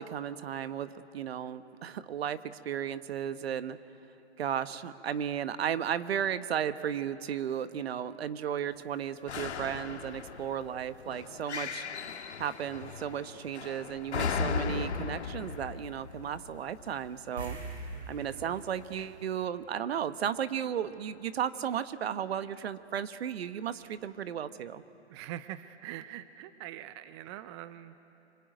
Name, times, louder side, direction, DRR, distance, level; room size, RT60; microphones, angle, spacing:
voice 1, 0.0-3.8 4.4-11.9 12.4-17.6 18.1-24.8, right 9 dB, 60° right, 13 dB, 1.2 m, -34 dB
sound 1, 9.3-17.5 18.3-18.4, left 5 dB, 70° left, 2.0 m, -37 dB
sound 2, 17.4-20.2 20.5-20.6 23.5-23.6 24.0-24.1, right 3 dB, 85° right, 6.0 m, -43 dB
voice 2, 17.9-18.5 25.1-28.0, right 13 dB, 25° right, 13 dB, 0.6 m, -44 dB
25.5 x 23.0 x 9.2 m, 2.9 s
hypercardioid pair, 135°, 34 cm